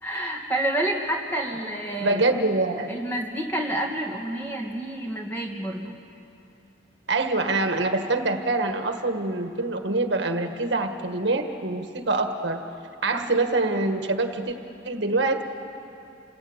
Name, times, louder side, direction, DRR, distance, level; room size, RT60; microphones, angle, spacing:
voice 1, 0.0-2.3 2.9-6.0 13.1-13.4, right 1 dB, 10° left, 0 dB, 2.5 m, -29 dB
voice 2, 2.0-2.9 7.1-12.6 13.0-14.5 14.8-15.4, right 2 dB, 70° right, 6 dB, 1.6 m, -25 dB
28.0 x 19.0 x 9.0 m, 2.8 s
head